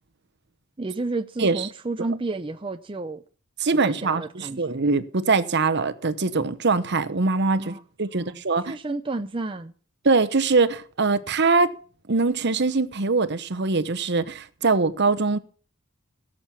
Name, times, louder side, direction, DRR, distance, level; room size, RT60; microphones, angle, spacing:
voice 1, 0.8-3.2 3.8-4.9 7.6-7.8 8.1-9.7, right 3 dB, 25° right, 0.6 m, -31 dB
voice 2, 3.6-8.8 10.0-11.7 12.1-15.4, right 3 dB, 50° right, 1.0 m, -22 dB
17.0 x 7.6 x 5.7 m
head